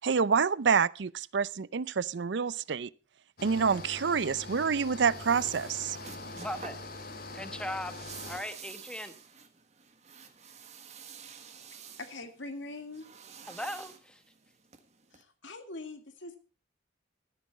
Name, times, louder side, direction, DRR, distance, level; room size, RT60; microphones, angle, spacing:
voice 1, 0.0-2.9 3.4-6.0, right 6 dB, 65° right, 0.5 m, -27 dB
sound 1, 3.4-8.4, left 2 dB, 50° left, 2.4 m, -43 dB
sound 2, 4.5-15.2, right 6 dB, 35° right, 1.5 m, -50 dB
voice 2, 6.4-6.8 7.3-7.9 8.2-9.1 13.5-14.2, left 1 dB, 5° left, 1.2 m, -38 dB
voice 3, 12.0-13.1 15.1-16.4, left 2 dB, 75° left, 2.2 m, -42 dB
14.5 x 10.0 x 4.2 m
head